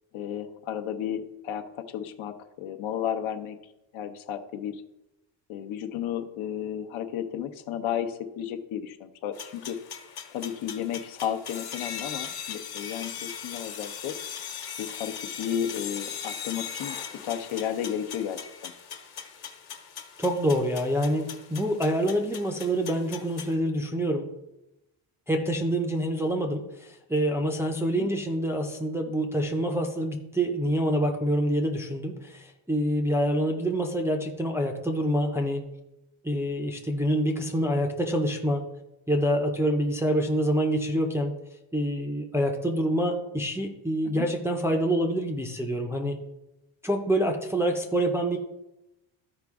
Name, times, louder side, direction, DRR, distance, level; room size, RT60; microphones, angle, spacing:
voice 1, 0.1-3.6 3.9-4.8 5.5-9.8 10.3-14.1 14.8-17.0 17.2-18.7 28.0-28.1 44.0-44.3, left 9 dB, 75° left, 6 dB, 0.9 m, -33 dB
sound 1, 9.3-23.5, left 8 dB, 50° left, 1.3 m, -39 dB
voice 2, 20.2-24.3 25.3-35.6 36.2-38.6 39.1-41.3 41.7-46.2 46.8-48.4, equal, 5° right, 1 dB, 0.4 m, -26 dB
13.5 x 5.0 x 3.5 m, 0.93 s
cardioid pair, 175°, 48 cm